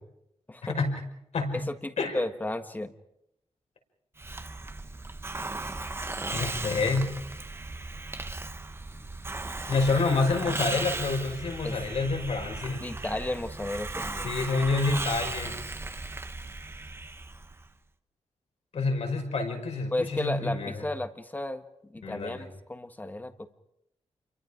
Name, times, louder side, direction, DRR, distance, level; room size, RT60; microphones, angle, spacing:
voice 1, 0.6-1.0 1.3-1.6 2.0-2.2 6.3-7.1 9.7-12.8 14.2-15.5 18.7-20.8 22.0-22.4, left 3 dB, 70° left, 3 dB, 5.4 m, -28 dB
voice 2, 1.5-2.9 11.6-11.8 12.8-14.3 19.9-23.5, left 1 dB, 15° left, 8 dB, 1.5 m, -34 dB
Hiss, 4.2-17.7, right 2 dB, 20° right, 1.0 m, -36 dB
29.0 x 23.5 x 5.0 m, 0.79 s
wide cardioid pair, 125°, 12 cm